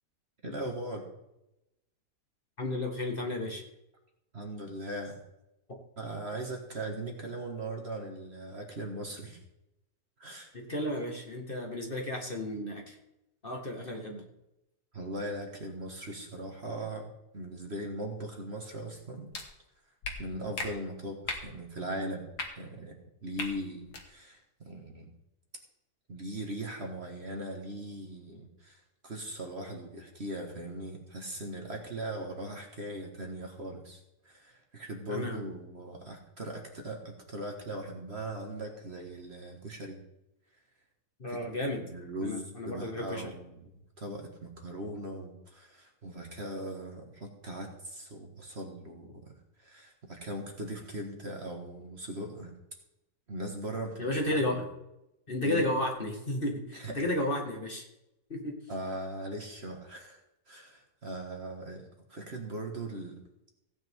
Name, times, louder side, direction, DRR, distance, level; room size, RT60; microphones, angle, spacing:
voice 1, 0.4-1.1 4.3-5.2 6.0-9.4 10.2-10.5 14.9-19.3 20.2-25.1 26.1-34.0 34.2-40.0 41.3-41.4 41.8-43.6 44.0-49.3 49.6-52.5 53.3-54.6 55.4-55.6 56.7-57.1 58.7-60.2 60.5-63.2, right 1 dB, 40° right, 2 dB, 1.9 m, -39 dB
voice 2, 2.6-3.6 10.5-13.0 13.4-14.2 35.1-35.4 41.2-41.8 42.2-43.3 54.0-54.6 55.3-57.8 58.3-58.5, left 1 dB, 35° left, 1 dB, 2.0 m, -33 dB
sound 1, 19.3-19.4 20.0-20.1 20.6-20.7 21.2-21.4 22.3-22.5 23.3-23.5 23.9-24.0, left 3 dB, 70° left, 2.2 m, -35 dB
16.5 x 9.3 x 3.7 m, 0.89 s
omnidirectional pair, 1.8 m